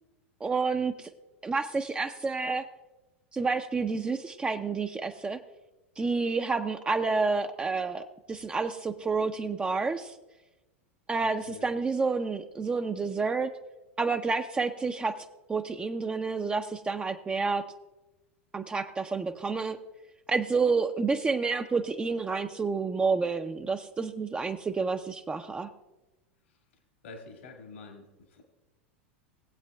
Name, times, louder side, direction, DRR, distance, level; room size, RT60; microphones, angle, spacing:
voice 1, 0.4-1.1 1.4-2.7 3.3-5.4 6.0-10.1 11.1-13.5 14.0-15.2 15.5-17.6 18.5-19.8 20.3-25.7, right 4 dB, 15° right, 6 dB, 0.5 m, -29 dB
voice 2, 11.2-11.7 27.0-28.4, left 3 dB, 75° left, 2 dB, 1.8 m, -47 dB
19.5 x 8.1 x 2.3 m, 1.1 s
hypercardioid pair, 90°, 7 cm